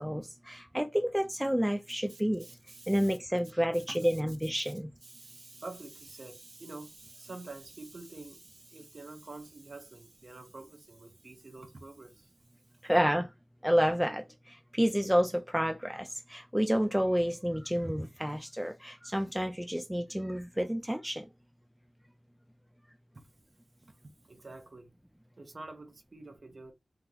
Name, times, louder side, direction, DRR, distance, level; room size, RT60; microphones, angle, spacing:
voice 1, 0.0-2.5 2.9-4.9 12.8-13.3 13.6-21.3, equal, 5° right, 0.3 m, -29 dB
voice 2, 2.1-3.2 3.4-4.4 4.7-4.8 5.0-12.3 23.1-23.3 23.8-23.9 24.2-24.9 25.4-26.7, right 2 dB, 45° right, 0.7 m, -48 dB
3.0 x 2.0 x 3.7 m
wide cardioid pair, 75°, 0 cm